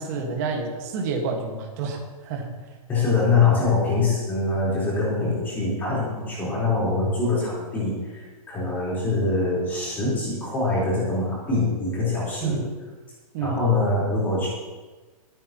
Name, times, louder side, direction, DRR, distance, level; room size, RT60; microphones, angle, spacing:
voice 1, 0.0-2.5 12.4-12.7 13.3-13.6, right 4 dB, 25° right, 2 dB, 1.7 m, -29 dB
voice 2, 2.9-12.6 13.4-14.5, left 3 dB, 10° left, -7 dB, 4.2 m, -24 dB
23.5 x 8.8 x 3.0 m, 1.3 s
hypercardioid pair, 175°, 19 cm